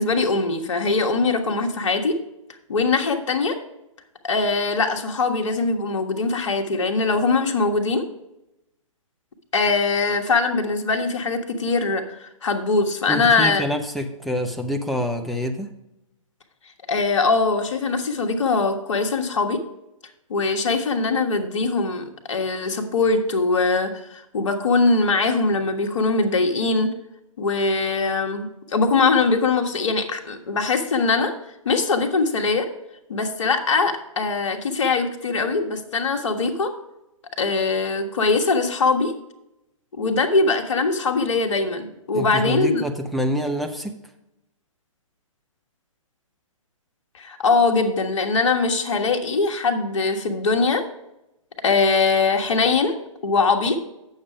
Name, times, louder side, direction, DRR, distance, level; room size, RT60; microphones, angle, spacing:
voice 1, 0.0-2.2 2.7-3.6 4.2-8.0 9.5-13.6 16.9-19.6 20.3-26.9 27.4-31.3 31.6-32.7 33.1-36.7 37.4-39.1 40.0-42.8 47.1-50.8 51.6-53.0 53.2-53.8, left 3 dB, 60° left, 4 dB, 1.3 m, -22 dB
voice 2, 13.1-15.7 42.1-43.9, left 1 dB, ahead, 3 dB, 0.6 m, -26 dB
8.7 x 6.7 x 4.9 m, 0.89 s
figure-of-eight pair, 125°, 17 cm